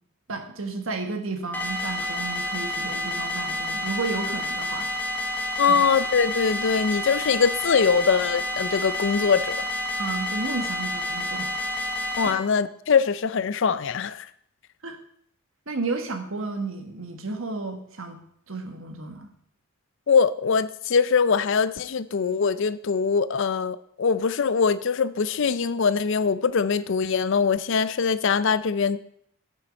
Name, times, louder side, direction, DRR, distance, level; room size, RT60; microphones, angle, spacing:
voice 1, 0.3-4.9 5.7-5.8 10.0-11.5 12.2-12.4 14.8-15.0 15.7-19.3, right 3 dB, 70° right, 1.5 m, -32 dB
sound 1, 1.5-12.3, left 1 dB, 10° left, 1.0 m, -29 dB
voice 2, 5.6-9.6 12.2-14.3 20.1-29.0, left 5 dB, 60° left, 0.5 m, -22 dB
8.8 x 7.5 x 5.3 m
head